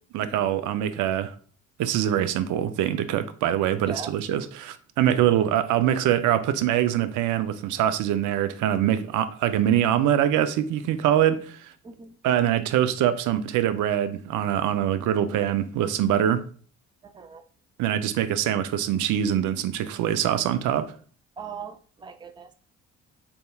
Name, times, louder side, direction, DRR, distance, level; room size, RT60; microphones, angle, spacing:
voice 1, 0.1-1.3 1.8-11.6 12.2-16.4 17.8-20.9, right 11 dB, 80° right, 0.5 m, -24 dB
voice 2, 11.8-12.2 17.0-17.4 21.4-22.5, right 6 dB, 15° right, 0.4 m, -40 dB
4.4 x 3.5 x 2.2 m
cardioid pair, 90°, 30 cm